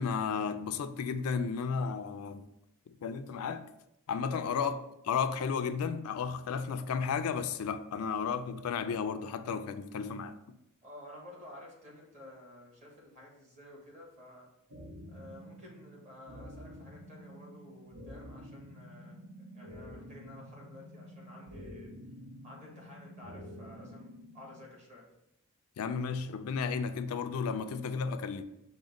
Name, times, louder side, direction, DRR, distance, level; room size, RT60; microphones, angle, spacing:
voice 1, 0.0-2.4 2.9-3.7 4.1-4.8 5.0-10.6 25.8-28.4, left 6 dB, 80° left, 0.4 m, -33 dB
voice 2, 10.8-14.5 15.1-21.9 22.4-25.1, left 1 dB, 35° right, 1.5 m, -52 dB
sound 1, 14.7-24.7, equal, 85° right, 0.8 m, -49 dB
5.1 x 2.1 x 4.9 m
head